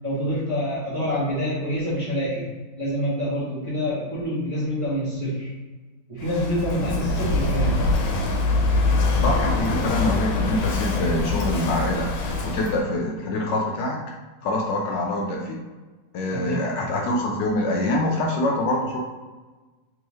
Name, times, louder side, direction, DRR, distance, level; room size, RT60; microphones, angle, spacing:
voice 1, 0.0-5.6 6.1-7.9 9.4-9.5 16.3-16.7, equal, 25° right, -10 dB, 0.7 m, -27 dB
Walk footsteps / Wind / Waves surf, 6.2-12.8, left 3 dB, 90° left, 1.4 m, -24 dB
voice 2, 9.2-12.1 12.4-14.0 14.4-15.6 16.1-19.0, left 1 dB, 75° left, 0 dB, 1.1 m, -25 dB
3.5 x 3.0 x 3.0 m, 1.3 s
omnidirectional pair, 2.2 m